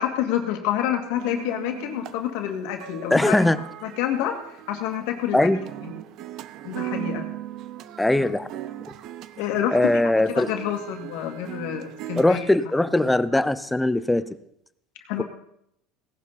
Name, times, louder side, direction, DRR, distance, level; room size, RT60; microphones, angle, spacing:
voice 1, 0.0-3.4 3.8-4.4 4.7-5.5 5.8-5.9 6.6-7.3 9.4-9.9 10.3-12.5 15.1-15.2, left 11 dB, 75° left, 4 dB, 2.0 m, -27 dB
sound 1, 1.2-12.3, right 13 dB, 50° right, 0.6 m, -38 dB
voice 2, 3.1-3.6 5.3-5.6 8.0-8.5 9.7-10.5 12.2-14.3, left 1 dB, 5° left, 14 dB, 0.6 m, -20 dB
17.0 x 11.0 x 4.2 m, 0.75 s
supercardioid pair, 125°, 0 cm